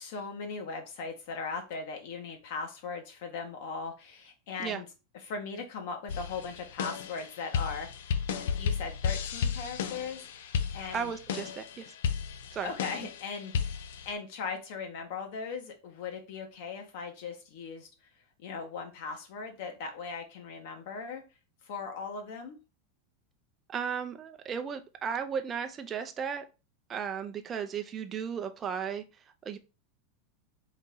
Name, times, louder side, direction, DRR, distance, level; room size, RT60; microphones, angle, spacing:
voice 1, 0.0-4.8 5.1-8.0 8.4-11.1 12.6-13.8 14.0-17.9 18.4-21.2 21.6-22.6, left 5 dB, 65° left, 1.3 m, -39 dB
sound 1, 6.1-14.1, left 6 dB, 80° left, 0.5 m, -33 dB
voice 2, 10.9-11.9 12.5-12.7 23.7-26.4 26.9-29.0 29.5-29.6, right 7 dB, 25° right, 0.5 m, -35 dB
4.0 x 2.7 x 3.7 m
supercardioid pair, 135°, 0 cm